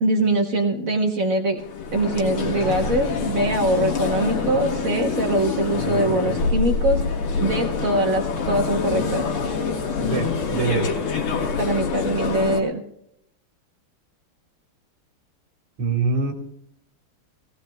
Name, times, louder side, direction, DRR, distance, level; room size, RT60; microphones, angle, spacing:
voice 1, 0.0-1.6 1.9-7.0 7.4-9.3 11.6-12.8, right 1 dB, 50° right, 4 dB, 1.2 m, -22 dB
sound 1, 1.6-12.6, left 4 dB, 90° left, 2.3 m, -26 dB
voice 2, 10.0-10.9 15.8-16.3, right 4 dB, 85° right, 4 dB, 2.6 m, -24 dB
18.5 x 17.0 x 2.3 m, 0.75 s
omnidirectional pair, 2.4 m